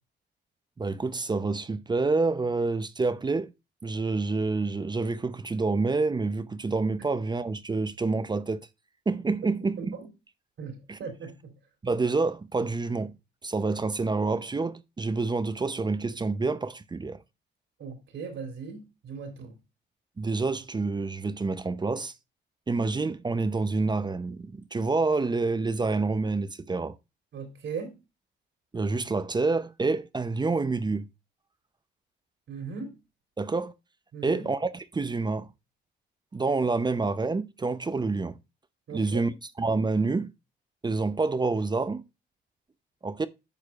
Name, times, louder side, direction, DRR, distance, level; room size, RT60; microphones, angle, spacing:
voice 1, 0.8-3.5 3.8-8.6 9.1-10.0 10.9-11.0 11.8-13.1 13.4-17.2 20.2-22.1 22.7-27.0 28.7-31.1 33.4-33.7 34.2-35.5 36.3-38.4 38.9-40.3 40.8-42.0 43.0-43.3, right 3 dB, 20° right, 0.6 m, -28 dB
voice 2, 9.8-10.1 10.6-11.5 17.8-19.5 27.3-28.0 32.5-32.9 34.1-34.5 38.9-39.3, right 5 dB, 70° right, 3.3 m, -38 dB
10.5 x 6.5 x 2.4 m
cardioid pair, 90°, 20 cm